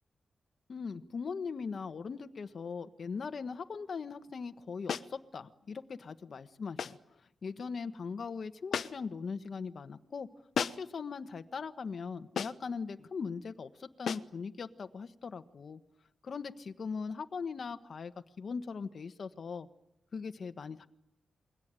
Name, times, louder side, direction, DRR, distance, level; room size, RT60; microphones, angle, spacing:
voice 1, 0.7-10.3 10.8-15.8 16.2-19.7 20.1-20.9, left 5 dB, 55° left, 8 dB, 1.3 m, -40 dB
sound 1, 4.9-5.2 6.8-7.1 8.7-9.2 10.5-11.0 12.4-12.7 14.1-14.4, left 7 dB, 75° left, 1.0 m, -35 dB
28.5 x 22.0 x 9.0 m, 0.82 s
wide cardioid pair, 125°, 0 cm